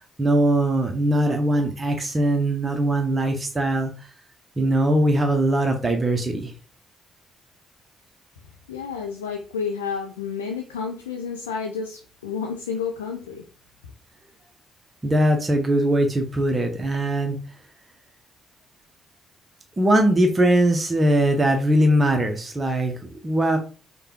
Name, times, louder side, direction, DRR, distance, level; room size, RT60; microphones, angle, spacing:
voice 1, 0.2-3.9 4.6-6.5 15.0-17.4 19.8-23.6, right 1 dB, 25° right, 3 dB, 0.7 m, -21 dB
voice 2, 8.7-13.4, left 6 dB, 75° left, 2 dB, 0.4 m, -30 dB
4.9 x 2.2 x 2.9 m, 0.37 s
figure-of-eight pair, 45°, 0 cm